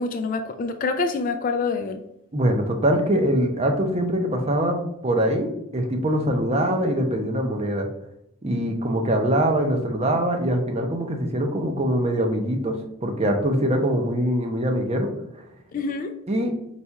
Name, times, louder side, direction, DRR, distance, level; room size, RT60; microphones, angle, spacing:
voice 1, 0.0-2.0 15.7-16.1, left 4 dB, 40° left, 0.3 m, -26 dB
voice 2, 2.3-7.9 8.4-15.4 16.3-16.5, right 1 dB, 30° right, 0.6 m, -23 dB
4.1 x 2.4 x 4.5 m
head